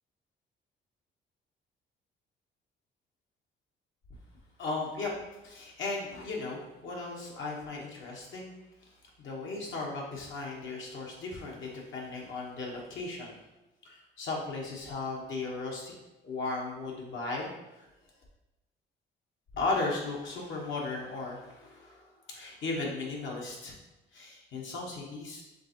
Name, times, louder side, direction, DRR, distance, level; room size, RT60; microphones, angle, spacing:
voice 1, 4.6-5.1 5.4-8.5 9.2-13.4 13.8-15.9 16.2-17.9 19.5-23.8 24.1-25.4, left 3 dB, 70° left, -2 dB, 1.2 m, -36 dB
5.1 x 3.3 x 2.9 m, 1.0 s
cardioid pair, 90°, 20 cm